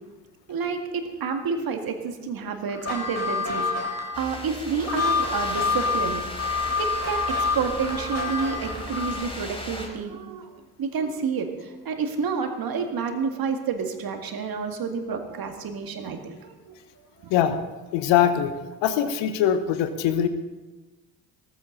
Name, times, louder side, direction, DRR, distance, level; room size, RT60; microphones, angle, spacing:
voice 1, 0.5-6.2 6.8-10.5 10.8-16.8 17.2-17.3, right 5 dB, 45° right, 5 dB, 2.1 m, -29 dB
sound 1, 2.7-9.3, left 4 dB, 35° left, 5.0 m, -27 dB
sound 2, 4.1-9.9, left 1 dB, 10° left, 4.2 m, -37 dB
voice 2, 17.9-18.5 18.8-20.3, left 9 dB, 65° left, 10 dB, 1.2 m, -22 dB
17.0 x 14.5 x 4.0 m, 1.2 s
figure-of-eight pair, 50°, 48 cm